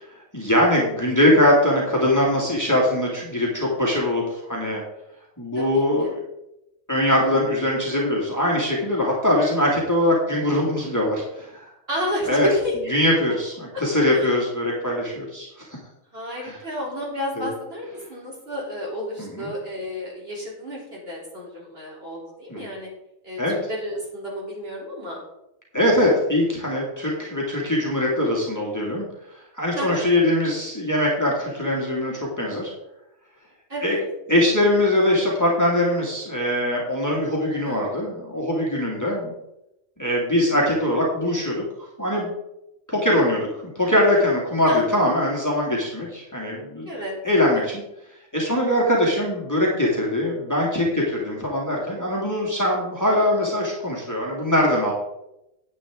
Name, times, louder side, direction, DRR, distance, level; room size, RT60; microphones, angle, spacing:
voice 1, 0.3-4.8 5.4-6.2 6.9-11.7 12.2-12.5 12.9-15.7 16.4-16.6 17.4-17.5 19.2-19.5 22.5-22.7 23.4-23.6 25.7-29.1 29.5-32.7 33.8-34.0 34.3-39.3 40.0-42.3 42.9-46.9 47.2-47.8 48.3-54.9, left 1 dB, 15° left, -3 dB, 2.2 m, -22 dB
voice 2, 5.5-6.1 11.9-12.7 13.7-13.8 14.1-14.3 16.1-22.9 23.2-25.2 29.8-30.1 33.7-34.0 37.5-37.8 44.7-44.8 46.9-47.1 47.5-47.6, equal, 45° right, -4 dB, 3.7 m, -31 dB
9.9 x 9.1 x 3.7 m, 0.87 s
omnidirectional pair, 1.4 m